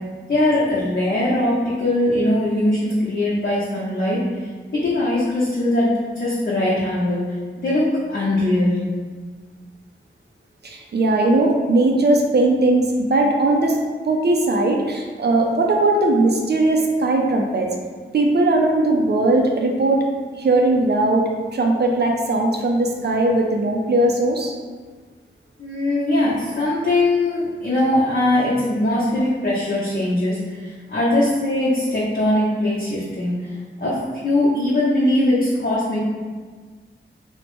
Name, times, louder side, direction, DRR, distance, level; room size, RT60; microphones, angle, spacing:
voice 1, 0.3-4.2 4.7-5.9 6.2-7.2 7.6-8.8 25.6-33.5 33.8-34.0 34.2-36.0, left 1 dB, 55° left, -10 dB, 0.8 m, -20 dB
voice 2, 10.6-13.8 14.1-17.7 18.1-20.0 20.4-21.2 21.5-24.5, right 2 dB, 55° right, 1 dB, 0.4 m, -19 dB
3.0 x 2.1 x 3.0 m, 1.5 s
wide cardioid pair, 55°, 20 cm